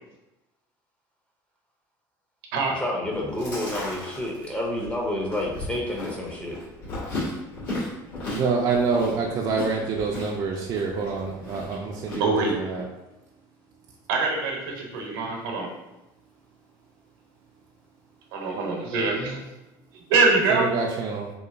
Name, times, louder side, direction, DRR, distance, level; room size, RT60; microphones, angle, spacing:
voice 1, 2.7-6.6, left 1 dB, 10° left, -2 dB, 0.5 m, -29 dB
Chewing mastication, 3.1-12.2, left 2 dB, 80° left, 1.4 m, -36 dB
voice 2, 8.3-12.9 20.5-21.3, right 4 dB, 40° right, -1 dB, 0.3 m, -26 dB
voice 3, 12.2-12.6 14.1-15.7 18.3-19.4 20.1-20.7, right 3 dB, 80° right, 0 dB, 0.8 m, -24 dB
2.8 x 2.1 x 2.5 m, 0.98 s
supercardioid pair, 90°, 11 cm